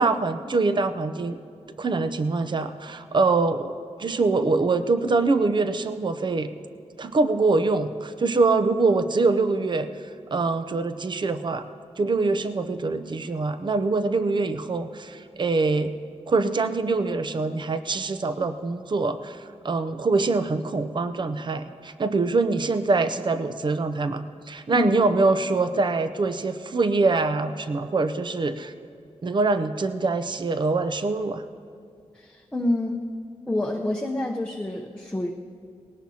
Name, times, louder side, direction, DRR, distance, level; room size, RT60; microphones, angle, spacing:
voice 1, 0.0-1.4 1.8-3.7 4.0-6.5 7.0-9.9 10.3-11.6 12.0-15.9 16.3-28.7 29.2-31.4, right 3 dB, 40° right, 10 dB, 0.6 m, -24 dB
voice 2, 32.1-33.0 33.5-35.3, left 1 dB, 10° left, -1 dB, 0.8 m, -27 dB
19.5 x 17.5 x 2.8 m, 2.3 s
wide cardioid pair, 135°, 12 cm